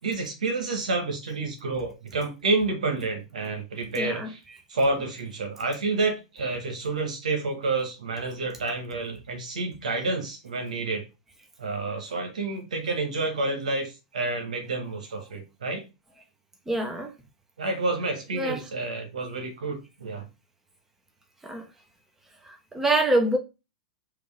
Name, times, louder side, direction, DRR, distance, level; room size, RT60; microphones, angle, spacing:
voice 1, 0.0-4.4 4.7-11.0 11.6-15.8 17.6-20.3, right 3 dB, 85° right, 1.6 m, -29 dB
voice 2, 4.0-4.3 16.7-17.1 18.4-18.6 21.4-21.6 22.7-23.4, right 2 dB, 10° right, 1.2 m, -24 dB
5.0 x 3.0 x 3.5 m
hypercardioid pair, 105°, 4 cm